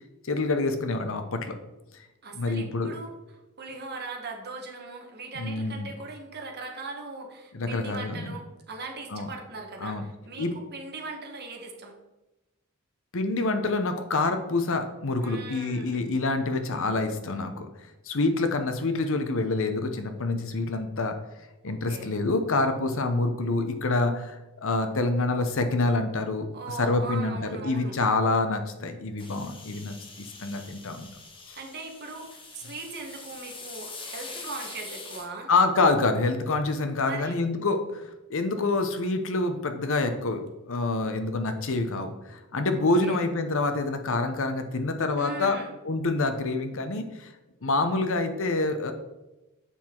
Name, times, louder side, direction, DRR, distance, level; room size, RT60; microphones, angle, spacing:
voice 1, 0.3-1.5 2.3-2.9 5.3-5.9 7.5-8.4 9.1-9.3 9.8-10.0 10.4-10.5 13.1-17.7 18.1-21.2 21.6-24.4 24.6-27.4 27.6-31.1 31.5-31.6 35.5-38.0 38.3-45.6 45.8-47.3 47.6-48.9, left 3 dB, 65° left, 7 dB, 0.9 m, -27 dB
voice 2, 2.2-3.1 3.6-12.0 15.2-16.0 21.7-22.1 26.5-27.9 31.5-35.5 37.1-37.4 43.0-43.2 45.2-45.7, right 3 dB, 50° right, 2 dB, 1.4 m, -39 dB
sound 1, 29.2-35.3, left 3 dB, 25° left, 1.2 m, -43 dB
7.2 x 5.7 x 4.5 m, 1.0 s
head